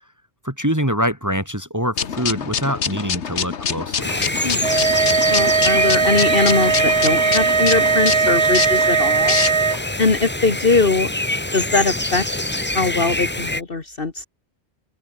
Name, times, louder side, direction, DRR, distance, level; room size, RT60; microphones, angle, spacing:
voice 1, 0.4-4.1, equal, 15° right, 3.3 m, -24 dB
sound 1, 2.0-9.8, left 7 dB, 75° left, 1.6 m, -26 dB
sound 2, 4.0-13.6, left 1 dB, 10° left, 1.1 m, -25 dB
sound 3, 4.6-9.8, right 5 dB, 30° right, 0.6 m, -18 dB
voice 2, 5.3-9.4 10.0-11.1 11.5-12.3 12.7-14.2, left 3 dB, 50° left, 2.1 m, -21 dB
open air
omnidirectional pair, 1.2 m